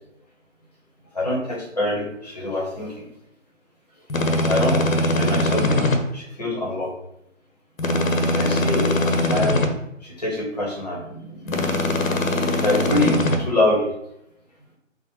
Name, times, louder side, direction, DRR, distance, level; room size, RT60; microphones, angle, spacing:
voice 1, 1.1-3.1 4.3-6.9 8.3-9.6 10.0-12.1 12.6-13.9, left 1 dB, 30° left, -4 dB, 0.8 m, -25 dB
sound 1, 4.1-6.0 7.8-9.7 11.5-13.4, left 1 dB, 80° left, 0.7 m, -21 dB
4.3 x 2.1 x 2.9 m, 0.78 s
figure-of-eight pair, 155°, 39 cm